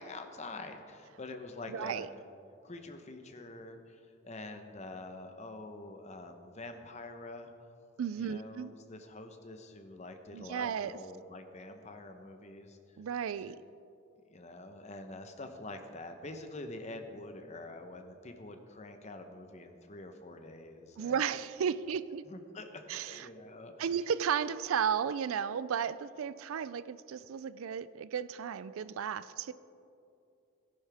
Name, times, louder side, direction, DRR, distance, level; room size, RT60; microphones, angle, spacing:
voice 1, 0.0-2.1 2.6-7.5 8.2-12.8 14.3-21.2 22.3-23.9, left 2 dB, 30° left, 6 dB, 0.9 m, -46 dB
voice 2, 1.7-2.1 8.0-8.7 10.3-11.0 13.0-13.6 21.0-22.2 22.9-23.3 23.8-29.5, right 7 dB, 75° right, 16 dB, 0.4 m, -34 dB
17.5 x 10.5 x 3.5 m, 2.6 s
head